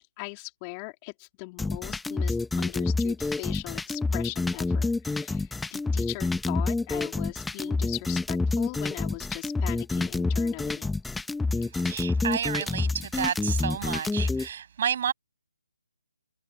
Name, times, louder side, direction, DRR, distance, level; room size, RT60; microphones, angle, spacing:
voice 1, 0.0-10.9, left 33 dB, 20° left, 2.9 m, -40 dB
sound 1, 1.6-14.5, left 3 dB, 5° left, 0.9 m, -28 dB
voice 2, 11.8-15.1, right 8 dB, 45° right, 7.0 m, -30 dB
figure-of-eight pair, 145°, 0 cm